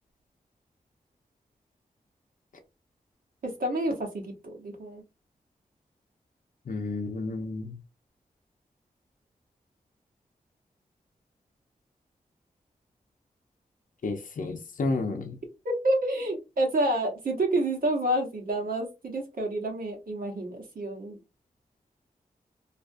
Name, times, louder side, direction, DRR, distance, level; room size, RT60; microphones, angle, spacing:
voice 1, 3.4-5.0 15.6-21.2, right 1 dB, 70° right, 1.0 m, -29 dB
voice 2, 6.7-7.8 14.0-15.4, left 3 dB, 60° left, 0.6 m, -31 dB
2.5 x 2.3 x 2.5 m
cardioid pair, 45°, 15 cm